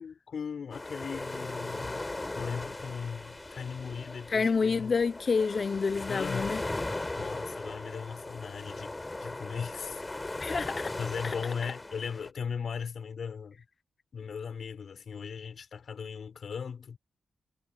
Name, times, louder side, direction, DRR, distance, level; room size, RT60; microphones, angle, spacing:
voice 1, 0.0-2.1 2.4-4.9 6.1-6.6 7.1-8.9 9.2-10.0 11.0-13.6 14.1-17.0, left 6 dB, 70° left, 6.6 m, -38 dB
sound 1, 0.7-12.3, left 2 dB, 25° left, 4.4 m, -38 dB
voice 2, 4.3-6.6 10.4-10.9 11.2-11.3, left 5 dB, 55° left, 0.8 m, -28 dB
cardioid pair, 60°, 0 cm